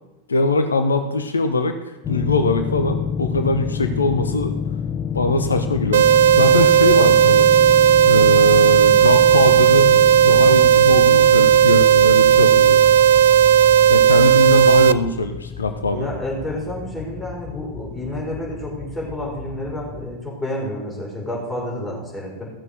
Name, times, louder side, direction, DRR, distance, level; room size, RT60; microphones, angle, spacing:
voice 1, 0.3-1.8 2.1-4.5 5.1-6.1 6.4-7.5 8.1-10.0 10.2-12.8 13.9-16.1, left 3 dB, 75° left, 8 dB, 0.9 m, -21 dB
sound 1, 2.0-20.2, left 7 dB, 25° left, 0.5 m, -29 dB
sound 2, 5.9-14.9, right 10 dB, 60° right, 0.4 m, -13 dB
voice 2, 15.8-22.5, left 1 dB, ahead, -5 dB, 4.4 m, -30 dB
16.0 x 6.8 x 6.5 m, 1.0 s
figure-of-eight pair, 90°, 0 cm